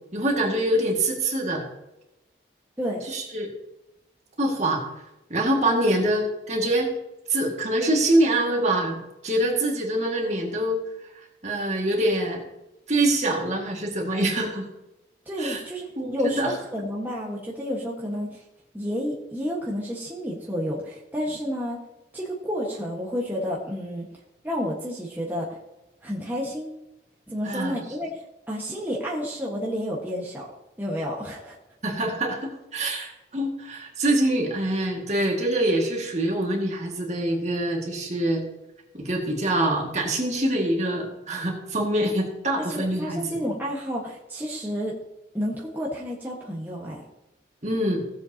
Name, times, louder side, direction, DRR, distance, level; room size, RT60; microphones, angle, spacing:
voice 1, 0.1-1.6 3.1-3.5 4.4-4.8 5.3-6.9 7.3-9.0 9.2-10.8 11.1-12.4 12.9-14.7 15.4-15.6 16.0-16.5 27.4-27.8 31.8-38.4 38.9-43.4 47.6-48.0, right 1 dB, 40° right, 0 dB, 2.1 m, -25 dB
voice 2, 2.8-3.1 15.2-18.4 18.7-21.8 22.1-24.0 24.4-25.5 26.0-26.7 27.3-28.2 28.5-30.5 30.8-31.6 42.7-44.9 45.3-47.0, equal, 10° right, -5 dB, 1.4 m, -30 dB
16.5 x 7.7 x 2.9 m, 0.94 s
head